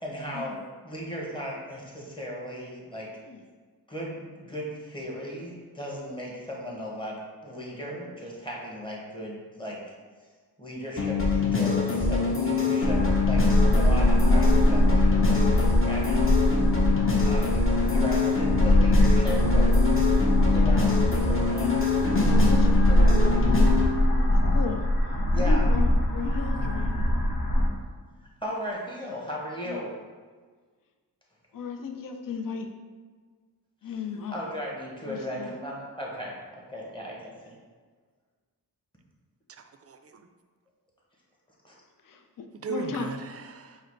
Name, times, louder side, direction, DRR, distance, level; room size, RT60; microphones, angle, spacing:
voice 1, 0.0-3.1 3.9-9.8 10.6-13.4 13.8-16.2 17.2-19.9 20.4-20.9 21.3-21.7 22.9-23.2 25.3-25.7 28.2-29.9 34.3-37.6 41.6-41.7, equal, 15° left, -3 dB, 1.1 m, -36 dB
sound 1, 11.0-23.9, left 4 dB, 35° left, 0.9 m, -25 dB
sound 2, 12.8-27.7, equal, 75° left, 0.9 m, -22 dB
voice 2, 21.6-21.9 22.4-22.7 24.1-27.2 29.7-29.8 31.5-32.7 33.8-34.4 35.1-35.6 42.0-43.1, left 5 dB, 55° left, 5 dB, 0.5 m, -35 dB
voice 3, 39.5-40.3 42.5-43.8, right 5 dB, 40° right, 6 dB, 0.4 m, -38 dB
4.9 x 2.0 x 4.5 m, 1.5 s
wide cardioid pair, 85°, 39 cm